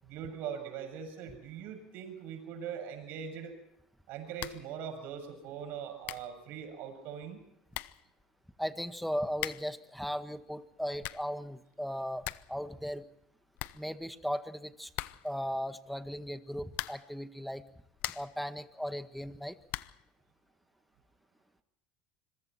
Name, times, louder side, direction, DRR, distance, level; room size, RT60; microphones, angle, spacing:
voice 1, 0.0-3.6 4.1-7.4, right 8 dB, 60° right, 7 dB, 6.9 m, -41 dB
sound 1, 4.4-4.7 5.0-5.1 5.7-5.8 6.0-6.4 7.3-7.4 7.7-8.1 9.3-9.8 10.7-11.4 11.7-11.8 12.0-12.6 12.8-12.9 13.2-13.3 13.6-14.4 14.9-15.4 16.7-17.2 17.7-18.4 19.7-20.1, left 17 dB, 60° left, 0.9 m, -41 dB
voice 2, 8.6-13.1 13.7-14.9 15.2-17.6 18.1-19.6, equal, ahead, 10 dB, 1.6 m, -37 dB
26.0 x 23.0 x 4.4 m, 0.78 s
supercardioid pair, 95°, 4 cm